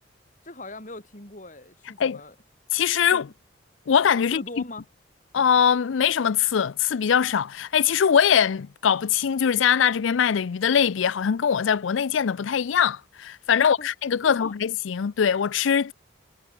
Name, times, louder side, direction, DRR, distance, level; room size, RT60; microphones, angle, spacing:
voice 1, 0.4-2.3 3.0-3.2 4.3-4.9 13.6-13.9 14.3-14.5, left 2 dB, 40° left, 5.0 m, -40 dB
voice 2, 2.7-3.3 3.9-4.4 5.3-15.9, left 7 dB, 80° left, 0.4 m, -22 dB
head